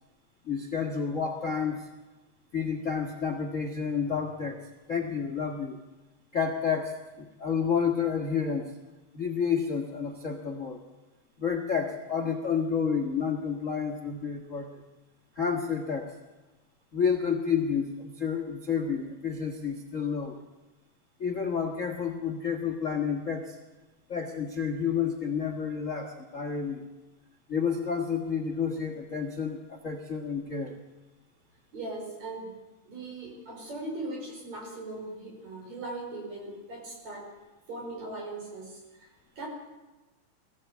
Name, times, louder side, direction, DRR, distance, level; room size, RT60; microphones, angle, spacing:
voice 1, 0.4-1.9 2.5-5.8 6.3-8.7 9.1-10.8 11.4-14.8 15.3-16.1 16.9-20.4 21.2-23.6 24.1-26.8 27.5-30.7, left 6 dB, 45° left, 4 dB, 1.0 m, -30 dB
voice 2, 31.7-32.5 32.8-37.3 37.7-39.5, right 2 dB, 55° right, 0 dB, 6.7 m, -39 dB
22.0 x 15.5 x 8.2 m, 1.1 s
omnidirectional pair, 3.9 m